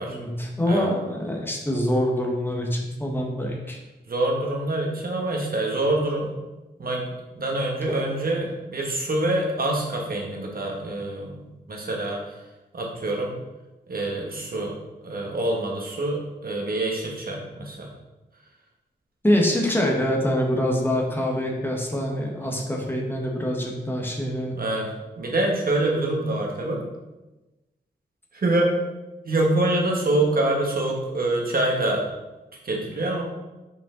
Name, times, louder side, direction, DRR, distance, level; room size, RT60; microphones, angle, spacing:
voice 1, 0.1-3.8 7.9-8.0 19.2-24.5, equal, 10° left, 0 dB, 1.1 m, -25 dB
voice 2, 4.1-6.4 6.8-12.4 12.7-13.3 13.9-14.7 15.0-17.9 22.4-22.5 24.5-24.9 25.2-26.8 28.3-28.7 29.2-32.0 32.6-33.2, right 2 dB, 55° right, -1 dB, 1.4 m, -25 dB
5.5 x 5.1 x 3.8 m, 1.1 s
wide cardioid pair, 115°, 18 cm